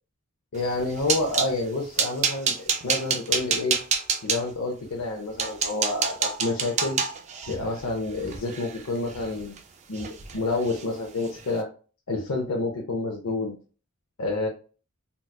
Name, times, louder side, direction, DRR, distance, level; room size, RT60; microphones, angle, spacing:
voice 1, 0.5-3.8 4.2-7.0 7.5-9.6 9.9-10.1 10.3-11.7 12.1-13.6 14.2-14.5, left 2 dB, 80° left, -1 dB, 0.6 m, -29 dB
sound 1, 0.6-1.5 2.0-4.4 5.0-5.1 5.4-9.6 9.9-10.4 10.6-10.8 11.2-11.4, right 6 dB, 30° right, 0.3 m, -28 dB
3.9 x 2.3 x 2.2 m, 0.36 s
head